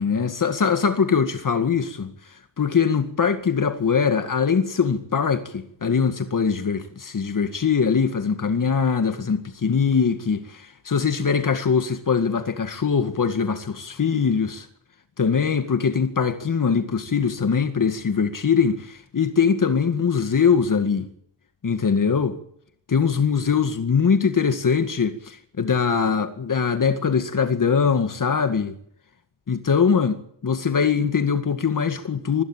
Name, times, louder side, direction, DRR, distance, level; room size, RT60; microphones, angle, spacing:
voice 1, 0.0-14.7 15.2-21.1 21.6-22.4 22.9-28.8 29.5-32.4, left 6 dB, 50° left, 2.1 m, -22 dB
25.0 x 17.0 x 9.0 m
wide cardioid pair, 140°, 41 cm